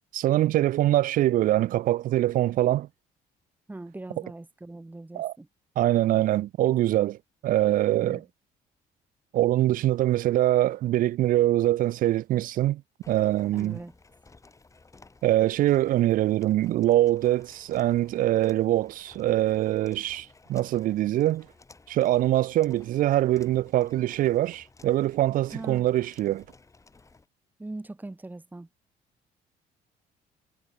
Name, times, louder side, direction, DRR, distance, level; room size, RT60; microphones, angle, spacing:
voice 1, 0.1-2.9 5.1-5.3 5.8-7.2 7.4-8.2 9.3-12.8 13.1-13.8 15.2-21.5 21.9-26.4, right 14 dB, 55° right, 0.4 m, -23 dB
voice 2, 3.7-5.5 8.0-8.2 13.5-13.9 25.5-25.9 27.6-28.7, right 2 dB, 10° right, 1.9 m, -40 dB
sound 1, 13.0-27.3, left 3 dB, 20° left, 2.7 m, -55 dB
cardioid pair, 110°, 17 cm